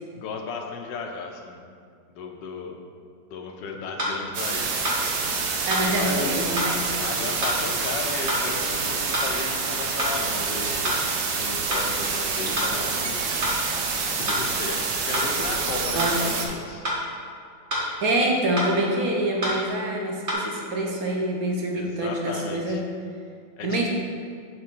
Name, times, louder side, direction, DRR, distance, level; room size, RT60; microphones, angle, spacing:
voice 1, 0.1-1.6 2.1-2.8 3.3-4.9 5.9-6.3 6.6-10.9 11.3-13.2 14.1-16.8 21.7-22.8 23.6-23.9, left 4 dB, 75° left, 3 dB, 1.3 m, -35 dB
sound 1, 4.0-4.2 4.8-5.0 5.7-5.9 6.6-6.7 7.4-7.6 8.3-8.4 9.1-9.3 10.0-10.2 10.8-11.0 11.7-11.9 12.6-12.7 13.4-13.6 14.3-14.4 15.1-15.3 16.0-16.2 16.8-17.0 17.7-17.9 18.6-18.7 19.4-19.6 20.3-20.4, equal, 40° right, 1.7 m, -26 dB
sound 2, 4.3-16.5, right 4 dB, 75° right, 1.4 m, -27 dB
voice 2, 5.7-6.7 15.9-16.1 18.0-22.8 23.6-23.9, right 1 dB, 55° right, 0 dB, 1.2 m, -25 dB
7.5 x 3.3 x 6.1 m, 2.2 s
omnidirectional pair, 2.0 m